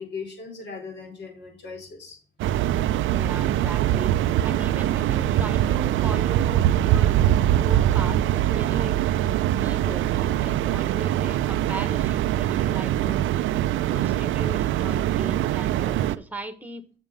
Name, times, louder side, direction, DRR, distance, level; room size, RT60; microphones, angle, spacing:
voice 1, 0.0-2.2, left 5 dB, 60° left, 2 dB, 4.2 m, -38 dB
sound 1, 2.4-16.2, right 12 dB, 80° right, 0.5 m, -23 dB
voice 2, 3.1-4.1 4.4-9.2 9.6-13.2 13.9-16.8, right 2 dB, 10° right, 10 dB, 1.4 m, -38 dB
7.5 x 6.3 x 5.0 m, 0.41 s
cardioid pair, 90°, 20 cm